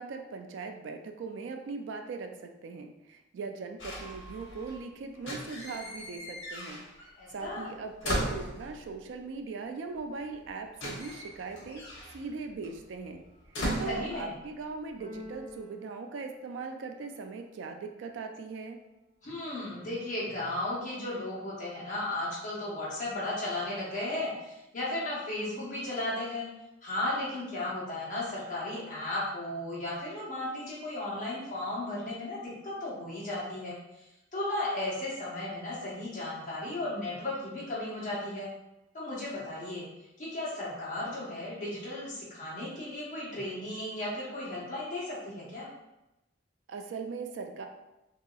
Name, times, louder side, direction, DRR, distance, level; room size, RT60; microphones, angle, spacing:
voice 1, 0.0-11.8 12.1-13.2 13.5-18.8 46.7-47.7, right 4 dB, 70° right, 5 dB, 0.3 m, -40 dB
sound 1, 3.8-4.8 5.1-7.1 7.4-9.0 10.0-10.1 10.3-14.7 15.0-15.5, equal, 85° left, 0.8 m, -38 dB
voice 2, 7.2-7.7 13.8-14.3 19.2-26.5 26.8-38.5 38.9-39.8 40.2-45.7, left 1 dB, 45° left, -7 dB, 1.1 m, -35 dB
Keyboard (musical), 15.0-17.1, left 2 dB, 30° right, 0.6 m, -48 dB
2.8 x 2.7 x 2.3 m, 0.95 s
head